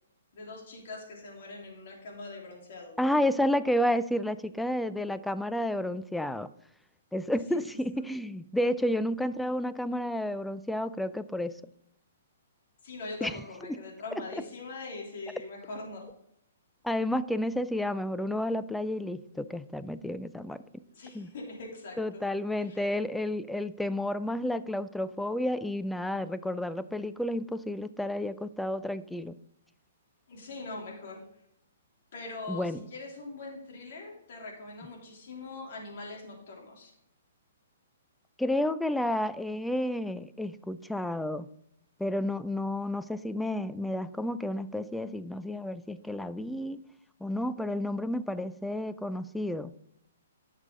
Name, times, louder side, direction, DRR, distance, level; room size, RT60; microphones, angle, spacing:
voice 1, 0.3-3.0 7.5-7.6 7.9-8.1 12.8-16.1 20.9-22.2 22.5-22.8 30.3-31.2 32.1-36.9, left 3 dB, 60° left, -1 dB, 3.2 m, -42 dB
voice 2, 3.0-6.5 7.1-11.6 13.2-13.4 13.7-13.8 16.8-20.6 21.1-21.3 22.0-29.3 32.5-32.8 38.4-41.5 42.0-46.8 47.2-49.7, left 1 dB, 5° left, 14 dB, 0.4 m, -31 dB
11.0 x 6.5 x 3.8 m, 0.75 s
hypercardioid pair, 145°, 0 cm